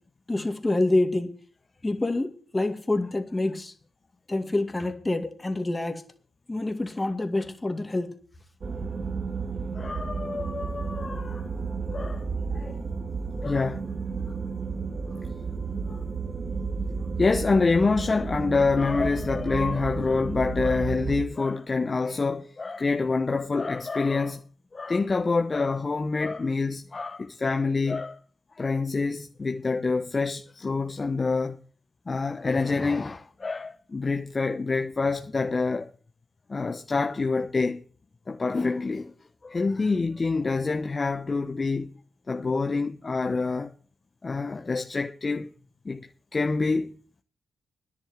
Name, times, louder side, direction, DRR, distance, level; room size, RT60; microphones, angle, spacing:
voice 1, 0.3-1.3 1.8-3.7 4.3-6.0 6.5-8.1, left 2 dB, 25° left, 2.4 m, -27 dB
sound 1, 8.6-21.3, right 4 dB, 50° right, 2.4 m, -32 dB
voice 2, 9.7-11.5 11.9-12.3 12.5-12.8 13.4-13.8 14.2-14.4 15.1-15.2 15.9-16.1 16.9-24.4 24.7-28.2 28.6-31.6 32.1-35.9 36.5-37.8 38.3-39.1 39.4-41.9 42.3-43.7 44.2-45.5 45.8-46.9, left 4 dB, 40° left, 1.1 m, -27 dB
10.5 x 8.1 x 8.2 m
hypercardioid pair, 40°, 0 cm